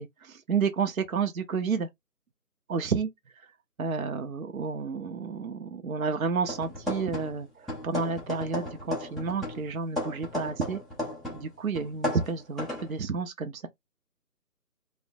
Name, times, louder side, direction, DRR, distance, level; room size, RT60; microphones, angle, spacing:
voice 1, 0.0-1.9 2.7-3.1 3.8-10.8 11.3-13.7, right 5 dB, 60° right, 0.6 m, -30 dB
sound 1, 6.5-7.4 7.7-11.5 11.8-12.9, left 1 dB, ahead, 0.5 m, -34 dB
3.0 x 2.1 x 2.7 m
figure-of-eight pair, 155°, 47 cm